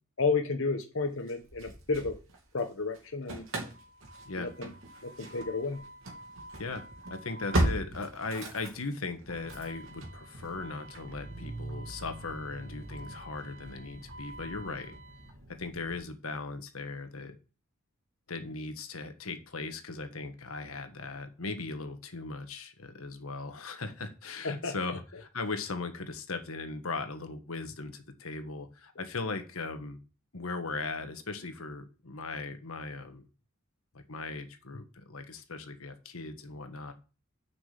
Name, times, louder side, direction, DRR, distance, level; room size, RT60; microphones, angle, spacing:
voice 1, 0.2-2.2 2.5-3.4 4.4-4.7 5.0-5.8 24.4-24.7, left 4 dB, 65° left, 3 dB, 1.1 m, -31 dB
Engine starting / Slam, 1.3-2.7 2.9-16.0, right 1 dB, 70° right, 2.7 m, -38 dB
voice 2, 6.6-14.9 15.6-17.4 18.3-30.0 30.3-33.3 33.9-36.9, left 3 dB, 85° left, 7 dB, 1.4 m, -38 dB
6.5 x 6.1 x 7.5 m, 0.34 s
head